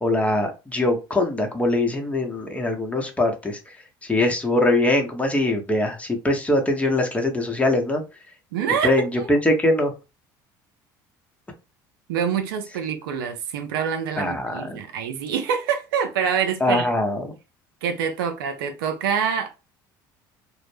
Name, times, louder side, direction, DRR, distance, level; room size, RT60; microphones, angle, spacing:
voice 1, 0.0-3.6 4.0-8.0 8.8-9.9 14.2-14.8 16.6-17.3, left 1 dB, 10° left, 0.7 m, -22 dB
voice 2, 8.5-9.3 12.1-16.9 17.8-19.5, right 7 dB, 80° right, 0.4 m, -26 dB
2.0 x 2.0 x 3.1 m
hypercardioid pair, 70°, 11 cm